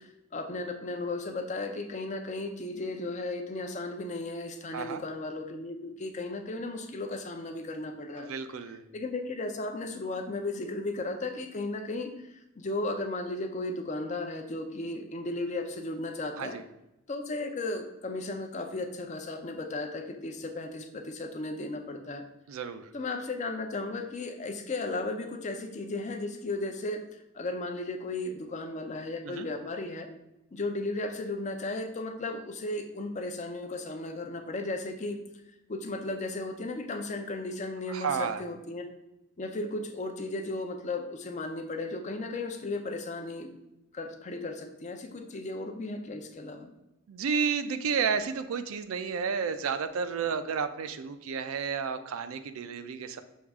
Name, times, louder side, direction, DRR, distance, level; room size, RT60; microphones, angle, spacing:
voice 1, 0.0-8.3 8.9-16.6 17.1-22.2 22.9-30.1 30.5-35.2 35.7-38.9 39.4-43.5 43.9-46.7, left 2 dB, 35° left, 5 dB, 0.4 m, -35 dB
voice 2, 8.2-8.8 16.4-16.6 22.5-22.9 29.2-29.5 37.9-38.4 47.1-53.2, right 6 dB, 80° right, 10 dB, 0.4 m, -31 dB
6.3 x 2.4 x 3.5 m, 0.91 s
head